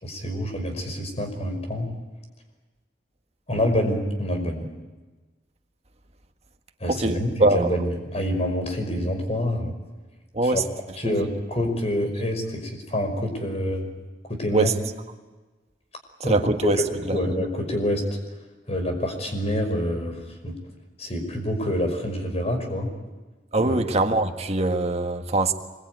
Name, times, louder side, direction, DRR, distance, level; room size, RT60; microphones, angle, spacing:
voice 1, 0.0-1.9 3.5-4.7 6.8-9.7 10.4-10.6 11.0-13.9 14.3-14.7 16.2-18.0 18.7-20.6 21.0-22.9 23.6-23.8, left 1 dB, 40° left, 5.5 m, -27 dB
voice 2, 6.9-7.7 10.3-10.6 11.0-11.2 14.5-14.7 16.2-16.8 17.1-17.5 23.5-25.5, right 2 dB, 40° right, 1.7 m, -23 dB
25.5 x 22.0 x 9.5 m
head